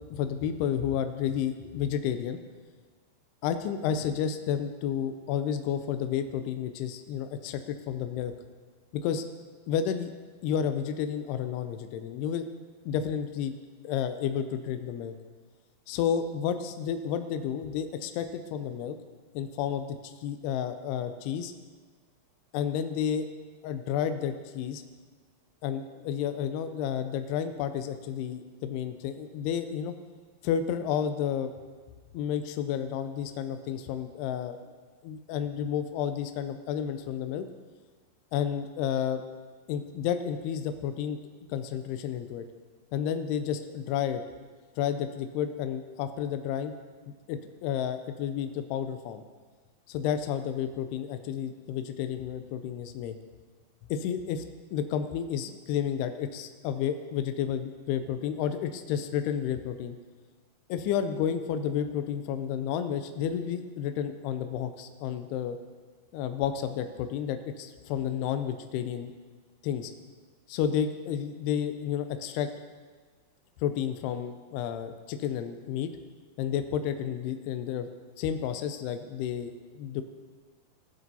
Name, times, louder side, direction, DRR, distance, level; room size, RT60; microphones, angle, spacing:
voice 1, 0.1-2.4 3.4-8.3 9.0-9.2 9.7-10.1 10.4-12.5 12.9-13.5 13.8-15.1 15.9-19.0 19.4-21.5 22.5-23.3 23.6-24.8 25.6-29.9 30.4-31.5 32.1-34.6 35.0-37.5 38.3-39.2 39.7-41.2 41.5-42.4 42.9-44.2 44.8-46.7 47.3-49.2 49.9-53.1 53.9-54.4 54.7-60.0 60.7-65.6 66.1-69.1 69.6-69.9 70.5-72.5 73.6-75.9 76.4-77.9 78.2-80.0, left 8 dB, 85° left, 8 dB, 2.6 m, -31 dB
18.0 x 7.5 x 2.7 m, 1.4 s
omnidirectional pair, 4.7 m